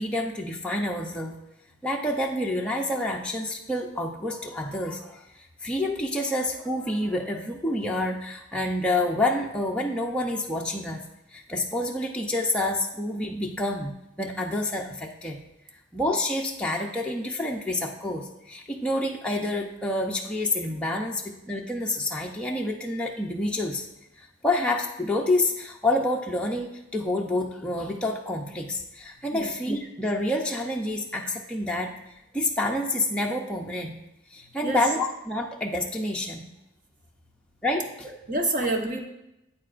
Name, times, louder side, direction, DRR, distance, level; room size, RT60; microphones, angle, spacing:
voice 1, 0.0-1.4 1.8-11.0 11.3-15.4 15.7-23.9 24.2-32.0 32.3-34.0 34.3-36.5 37.6-37.9, left 1 dB, 5° left, -1 dB, 0.5 m, -28 dB
voice 2, 38.0-39.0, right 2 dB, 40° right, 2 dB, 1.0 m, -28 dB
9.2 x 8.4 x 2.5 m, 0.88 s
head